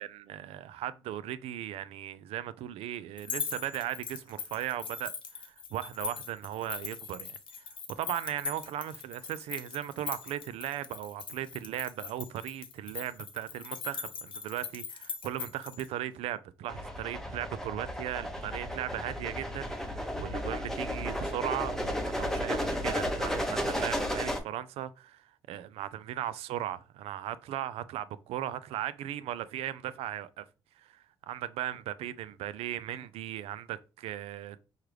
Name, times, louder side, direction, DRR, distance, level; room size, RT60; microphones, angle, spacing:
voice 1, 0.0-30.5 30.8-34.6, right 12 dB, 75° right, 0.4 m, -37 dB
sound 1, 3.2-15.9, left 6 dB, 55° left, 0.7 m, -41 dB
sound 2, 16.7-24.4, equal, 5° left, 0.7 m, -33 dB
4.5 x 2.4 x 3.2 m
supercardioid pair, 70°, 10 cm